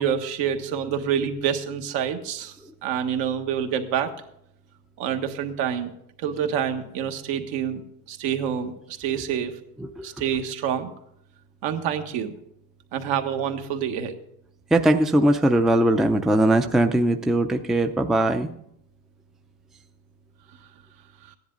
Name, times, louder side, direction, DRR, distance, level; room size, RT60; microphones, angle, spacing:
voice 1, 0.0-2.5 2.8-4.1 5.0-5.9 6.2-7.8 8.1-9.5 10.0-10.9 11.6-12.4 12.9-14.1 21.3-21.4, right 8 dB, 70° right, 5 dB, 1.6 m, -27 dB
voice 2, 14.7-18.5, right 1 dB, ahead, 6 dB, 0.5 m, -20 dB
15.0 x 10.5 x 3.9 m, 0.73 s
supercardioid pair, 115°, 45 cm